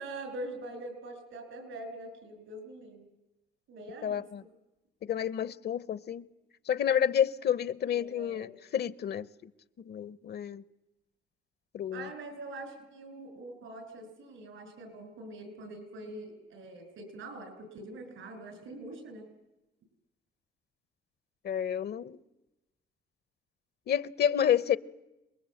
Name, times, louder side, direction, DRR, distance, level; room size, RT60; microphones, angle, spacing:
voice 1, 0.0-3.1 3.7-4.3 7.9-8.5 11.9-19.2, right 2 dB, 85° right, 7 dB, 6.5 m, -44 dB
voice 2, 4.0-4.4 5.0-6.3 6.7-9.5 9.8-10.6 11.7-12.1 21.4-22.2 23.9-24.8, left 9 dB, 55° left, 18 dB, 0.8 m, -30 dB
27.5 x 20.5 x 7.8 m, 0.99 s
cardioid pair, 90°, 20 cm